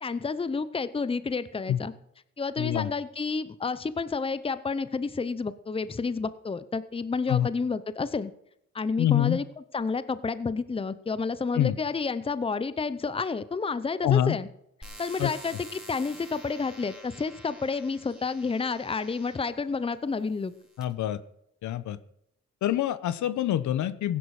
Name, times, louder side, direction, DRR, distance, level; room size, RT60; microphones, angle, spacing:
voice 1, 0.0-1.9 2.4-8.3 8.7-9.4 9.7-14.5 15.0-20.5, left 4 dB, 20° left, 15 dB, 0.8 m, -30 dB
voice 2, 2.6-2.9 7.3-7.5 9.0-9.4 11.5-11.7 14.0-14.4 15.2-15.3 20.8-21.2 21.6-22.0 22.6-24.2, left 11 dB, 75° left, 15 dB, 1.0 m, -25 dB
sound 1, 14.8-19.6 20.3-20.8, right 1 dB, ahead, 3.9 m, -48 dB
15.5 x 11.0 x 4.9 m, 0.75 s
cardioid pair, 90°, 30 cm